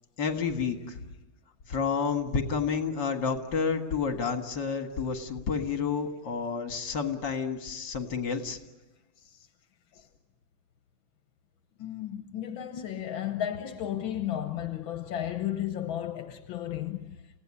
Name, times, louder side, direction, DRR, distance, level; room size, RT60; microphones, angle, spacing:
voice 1, 0.2-1.0 1.7-8.6, left 5 dB, 65° left, 2.5 m, -30 dB
voice 2, 11.8-17.2, left 11 dB, 85° left, 1.8 m, -34 dB
29.0 x 17.0 x 9.9 m
omnidirectional pair, 2.1 m